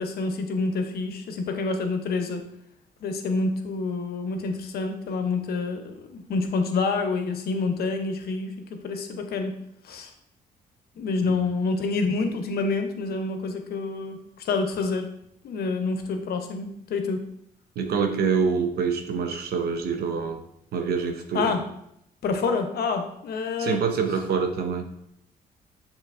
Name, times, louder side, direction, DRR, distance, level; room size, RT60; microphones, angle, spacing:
voice 1, 0.0-2.4 3.0-9.5 9.8-10.1 11.0-15.1 15.4-17.3 21.3-21.6 22.2-23.8, left 4 dB, 70° left, 5 dB, 0.7 m, -27 dB
voice 2, 17.8-20.4 20.7-21.5 23.6-24.8, right 5 dB, 70° right, 5 dB, 0.7 m, -26 dB
6.6 x 3.0 x 2.5 m, 0.76 s
cardioid pair, 75°, 17 cm